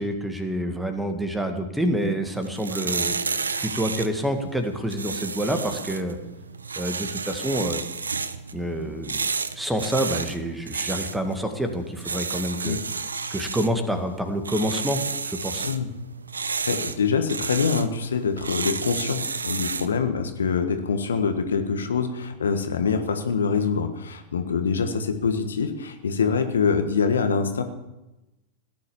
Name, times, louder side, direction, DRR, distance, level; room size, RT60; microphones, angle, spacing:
voice 1, 0.0-3.2 3.6-6.2 6.8-7.8 8.5-9.2 9.5-12.8 13.3-15.7, right 1 dB, 5° right, 6 dB, 2.0 m, -27 dB
sound 1, 2.3-20.0, right 5 dB, 75° right, 0.8 m, -32 dB
voice 2, 16.5-27.6, left 5 dB, 70° left, 7 dB, 1.5 m, -25 dB
17.5 x 10.5 x 7.1 m, 0.97 s
figure-of-eight pair, 90°, 0 cm